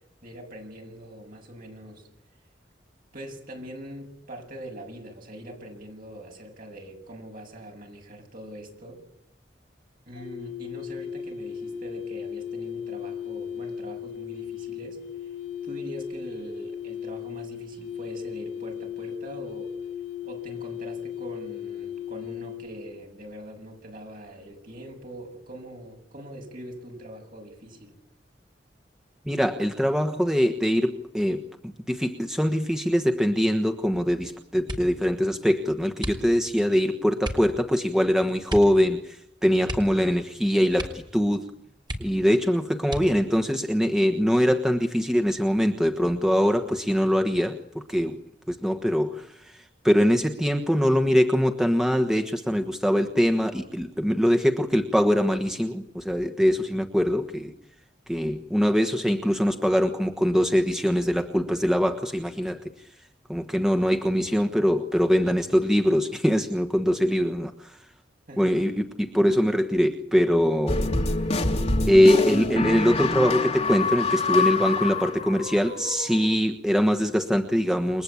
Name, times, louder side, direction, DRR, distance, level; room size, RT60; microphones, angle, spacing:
voice 1, 0.2-2.1 3.1-9.0 10.1-15.0 15.6-19.7 20.2-28.0 68.3-68.7, right 1 dB, 50° right, 7.5 m, -42 dB
sound 1, 10.1-22.9, left 8 dB, 75° left, 4.9 m, -36 dB
voice 2, 29.3-31.4 31.9-39.2 39.4-41.4 42.0-48.2 48.5-49.3 49.8-57.5 58.1-62.6 63.3-67.5 68.4-70.8 71.9-78.0, equal, 5° right, 1.3 m, -23 dB
sound 2, 34.6-35.1 36.0-36.6 37.2-37.5 38.5-38.8 39.1-39.2 39.6-40.4 40.7-41.2 41.5-41.6 41.8-42.4 42.8-43.4 44.1-44.7 45.1-45.5, equal, 25° right, 4.2 m, -35 dB
sound 3, 70.7-76.3, left 3 dB, 35° left, 2.6 m, -26 dB
29.5 x 23.0 x 8.7 m
head